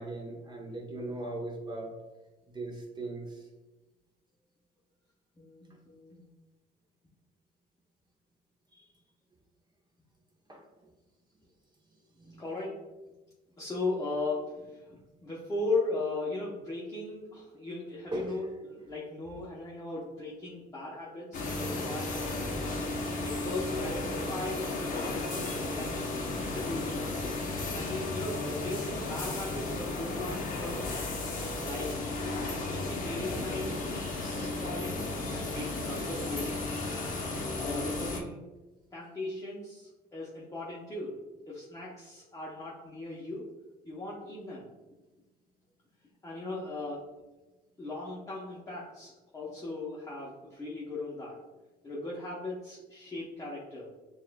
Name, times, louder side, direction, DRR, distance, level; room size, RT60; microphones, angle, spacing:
voice 1, 0.0-1.9 2.5-3.4 10.5-10.6 12.2-12.4 18.1-18.4 27.3-27.9, right 2 dB, 25° right, -1 dB, 0.8 m, -39 dB
voice 2, 5.4-6.2 12.2-12.8 13.6-22.6 23.2-25.2 25.7-27.1 27.7-31.1 31.6-32.0 32.5-33.8 34.4-36.7 37.6-38.5 38.9-41.2 41.5-43.5 43.8-44.7 46.2-47.1 47.8-51.4 51.8-53.9, left 2 dB, 20° left, -6 dB, 0.8 m, -38 dB
sound 1, 21.3-38.2, left 2 dB, 50° left, 0.8 m, -34 dB
6.5 x 2.4 x 2.2 m, 1.1 s
cardioid pair, 110°, 17 cm